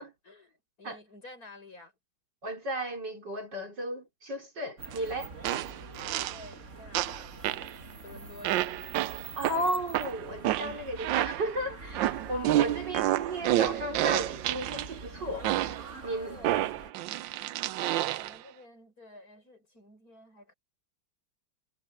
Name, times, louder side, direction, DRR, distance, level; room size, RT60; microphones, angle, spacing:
voice 1, 0.0-1.9 6.0-7.8 8.0-8.8 16.0-16.8 18.1-20.5, left 1 dB, 50° left, 7.0 m, -51 dB
voice 2, 2.4-5.4 9.4-15.5 16.0-16.4, right 1 dB, 65° right, 5.5 m, -34 dB
sound 1, 4.8-16.9, right 4 dB, 40° right, 2.4 m, -45 dB
sound 2, 4.9-5.0 5.4-6.5 6.9-7.7 8.4-11.6 11.9-14.9 15.4-15.9 16.4-18.4, right 14 dB, 80° right, 1.3 m, -29 dB
omnidirectional pair, 2.0 m